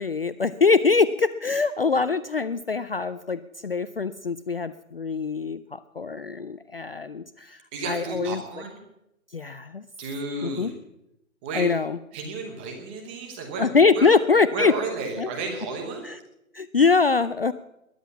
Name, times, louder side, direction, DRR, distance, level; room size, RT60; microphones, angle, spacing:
voice 1, 0.0-7.6 7.9-8.4 9.3-9.8 10.4-10.7 11.5-12.0 13.6-14.7 15.2-15.3 16.0-16.1 16.5-17.5, left 4 dB, 45° left, 14 dB, 0.5 m, -23 dB
voice 2, 7.7-8.8 10.0-10.7 11.4-11.7 12.1-14.1 14.5-16.1, right 3 dB, 10° right, 3 dB, 1.0 m, -33 dB
21.0 x 7.7 x 7.1 m, 0.84 s
hypercardioid pair, 160°, 42 cm